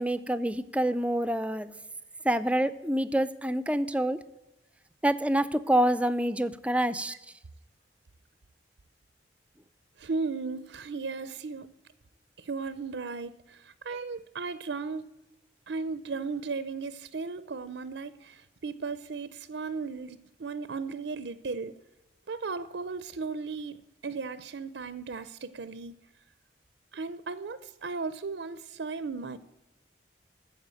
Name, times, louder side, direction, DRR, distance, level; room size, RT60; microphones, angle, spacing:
voice 1, 0.0-1.7 2.2-4.2 5.0-7.1, right 1 dB, 5° right, 13 dB, 0.5 m, -27 dB
voice 2, 10.0-11.7 12.4-15.1 15.7-21.7 22.3-23.8 24.0-25.9 26.9-29.4, right 4 dB, 80° right, 14 dB, 0.6 m, -36 dB
14.0 x 4.9 x 8.9 m, 0.98 s
head